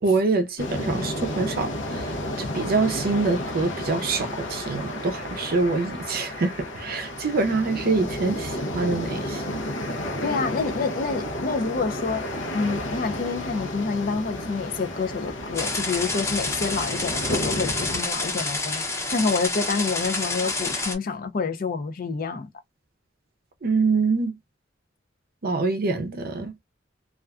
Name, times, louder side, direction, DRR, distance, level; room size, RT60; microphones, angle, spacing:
voice 1, 0.0-9.7 23.6-24.4 25.4-26.5, right 3 dB, 50° right, 0.5 m, -25 dB
sound 1, 0.6-18.0, left 1 dB, 90° left, 0.7 m, -32 dB
voice 2, 10.2-12.2 12.5-18.8 19.1-22.5, left 4 dB, 50° left, 0.5 m, -28 dB
sound 2, 15.5-21.0, left 3 dB, 15° left, 0.7 m, -28 dB
2.4 x 2.2 x 2.4 m
head